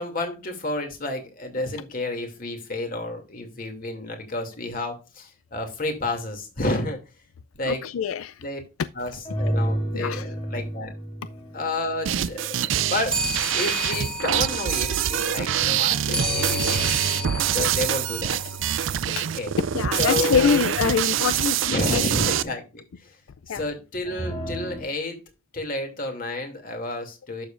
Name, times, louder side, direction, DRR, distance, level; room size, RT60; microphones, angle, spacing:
voice 1, 0.0-7.0 7.5-7.9 8.4-8.6 9.0-9.1 9.4-11.0 11.5-13.2 13.5-17.0 17.5-18.4 19.4-19.5 20.0-20.7 21.7-23.2 23.5-25.2 25.5-27.5, left 2 dB, 45° left, 2.6 m, -30 dB
voice 2, 7.7-8.4 9.9-10.3 18.8-18.9 19.2-19.3 19.7-22.1 23.5-23.6, left 6 dB, 85° left, 0.4 m, -25 dB
sound 1, 9.2-12.7 16.1-20.7 24.0-24.8, right 1 dB, 25° left, 3.5 m, -32 dB
sound 2, 12.1-22.4, right 10 dB, 70° right, 0.4 m, -25 dB
sound 3, 13.1-18.9, left 1 dB, 5° left, 1.8 m, -33 dB
11.5 x 7.1 x 2.5 m
head